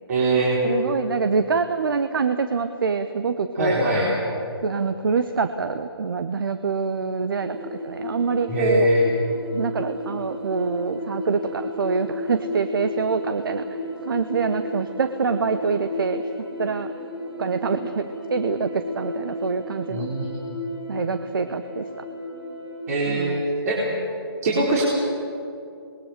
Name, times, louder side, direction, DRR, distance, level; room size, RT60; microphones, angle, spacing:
voice 1, 0.1-0.6 3.6-4.1 8.5-9.1 19.9-20.3 22.9-23.3 23.6-24.0 24.4-24.8, right 1 dB, 40° right, -5 dB, 4.3 m, -22 dB
voice 2, 0.6-3.9 4.6-8.9 9.5-13.7 14.0-16.9 17.4-20.1 20.9-21.9 23.1-23.4 24.5-24.8, right 5 dB, 55° right, 9 dB, 1.2 m, -25 dB
sound 1, 7.4-23.3, left 1 dB, 80° right, 5.6 m, -34 dB
26.5 x 21.0 x 6.9 m, 2.7 s
figure-of-eight pair, 150°, 13 cm